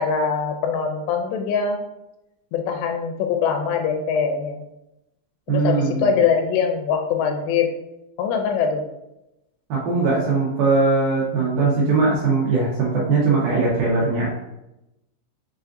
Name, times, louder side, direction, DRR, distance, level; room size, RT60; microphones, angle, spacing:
voice 1, 0.0-1.8 2.5-4.6 5.5-7.7 8.2-8.8, left 6 dB, 85° left, 4 dB, 2.6 m, -22 dB
voice 2, 5.5-6.1 9.7-14.3, right 3 dB, 75° right, -5 dB, 2.2 m, -20 dB
6.7 x 2.4 x 2.5 m, 0.90 s
omnidirectional pair, 4.9 m